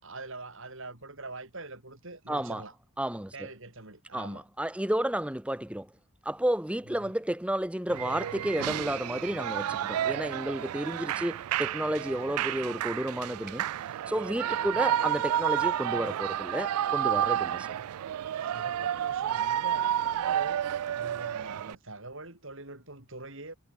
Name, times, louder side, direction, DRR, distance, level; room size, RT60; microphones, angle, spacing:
voice 1, 0.0-2.7 3.1-4.4 6.9-7.2 11.0-11.4 14.5-14.8 17.6-17.9 18.4-23.5, right 2 dB, 60° right, 5.7 m, -44 dB
voice 2, 2.3-2.6 3.0-3.3 4.1-5.9 6.2-13.7 14.1-17.7, right 1 dB, 5° right, 0.8 m, -31 dB
Shout / Cheering, 7.9-21.7, right 10 dB, 80° right, 0.3 m, -31 dB
head